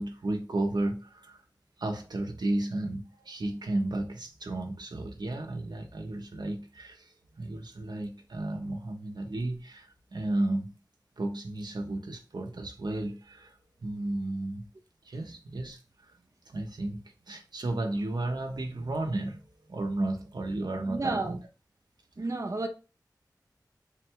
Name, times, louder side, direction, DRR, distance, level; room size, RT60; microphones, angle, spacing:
voice 1, 0.0-1.4 1.8-10.7 11.2-14.7 15.0-16.2 16.5-17.0 17.3-21.4, right 2 dB, 80° right, 0.7 m, -33 dB
voice 2, 20.9-21.4 22.2-22.7, right 3 dB, 45° right, 0.5 m, -31 dB
4.0 x 2.2 x 4.4 m
wide cardioid pair, 50°, 7 cm